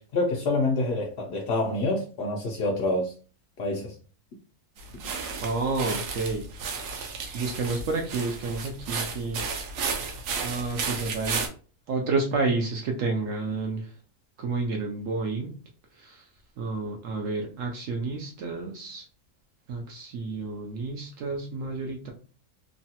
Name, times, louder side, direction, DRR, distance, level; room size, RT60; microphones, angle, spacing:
voice 1, 0.0-3.1 3.6-3.9, left 2 dB, 65° left, 0.6 m, -27 dB
sound 1, 4.8-11.5, right 5 dB, 80° right, 1.2 m, -33 dB
voice 2, 5.4-6.5 7.3-9.4 10.4-11.5 11.9-13.9 14.4-15.5 16.0-16.2 16.6-19.0 19.7-22.1, right 3 dB, 65° right, 0.8 m, -30 dB
3.1 x 2.2 x 2.8 m
omnidirectional pair, 1.7 m